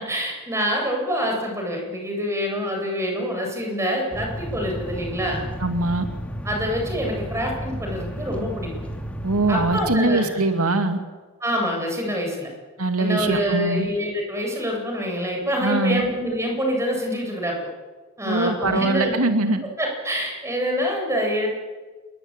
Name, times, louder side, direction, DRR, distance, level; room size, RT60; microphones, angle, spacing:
voice 1, 0.0-5.4 6.4-8.7 9.5-10.4 11.4-12.5 13.0-17.7 18.2-19.1 19.8-21.5, equal, 15° right, 1 dB, 7.8 m, -26 dB
sound 1, 4.1-10.0, equal, 5° left, 2.6 m, -32 dB
voice 2, 5.6-6.1 9.2-11.0 12.8-13.9 15.6-16.0 18.3-19.6, right 2 dB, 90° right, 6 dB, 2.4 m, -22 dB
28.0 x 22.0 x 9.0 m, 1.3 s
head